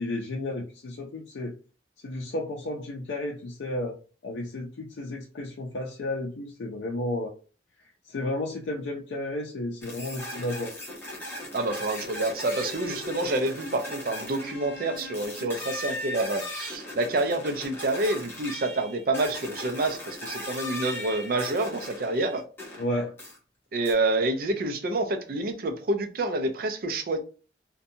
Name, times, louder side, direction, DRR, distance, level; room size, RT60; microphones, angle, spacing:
voice 1, 0.0-1.5 2.0-7.3 8.0-10.8 22.8-23.1, left 1 dB, 90° left, 0.4 m, -32 dB
sound 1, 9.8-22.9 23.2-23.4 23.8-23.9, left 1 dB, 10° left, 0.8 m, -38 dB
voice 2, 11.5-22.4 23.7-27.2, right 2 dB, 55° right, 0.4 m, -28 dB
2.6 x 2.2 x 2.6 m
head